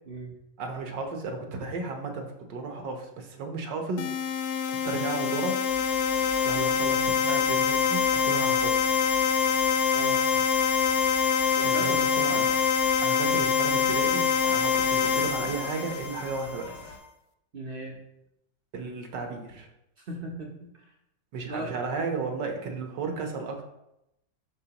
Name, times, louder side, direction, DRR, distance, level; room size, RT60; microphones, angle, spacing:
voice 1, 0.6-4.1 4.8-5.6 6.4-9.0 11.6-12.5 13.0-16.8 18.7-19.7 21.3-23.6, right 4 dB, 70° right, 3 dB, 1.6 m, -34 dB
sound 1, 4.0-16.7, left 6 dB, 70° left, 0.9 m, -25 dB
Ocean / Boat Water vehicle, 5.7-17.0, left 2 dB, 90° left, 2.4 m, -47 dB
voice 2, 9.9-10.2 11.6-12.2 15.4-15.6 17.5-18.0 20.1-20.7 21.5-21.7, right 2 dB, 45° right, 0 dB, 0.8 m, -38 dB
12.0 x 4.5 x 2.9 m, 0.85 s
omnidirectional pair, 2.1 m